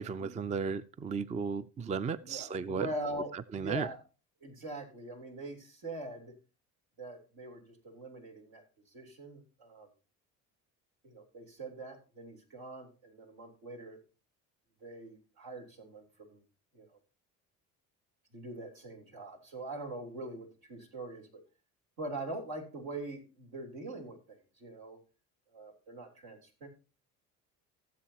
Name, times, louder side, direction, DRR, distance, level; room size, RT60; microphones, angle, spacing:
voice 1, 0.0-2.9 3.3-3.9, right 5 dB, 20° right, 0.4 m, -35 dB
voice 2, 2.2-4.0 4.4-6.3 7.0-9.9 11.0-14.0 14.8-16.4 16.7-17.0 18.3-21.4 22.0-25.0 25.5-26.7, right 2 dB, 75° right, 3.6 m, -43 dB
16.5 x 7.7 x 2.9 m
supercardioid pair, 75°, 36 cm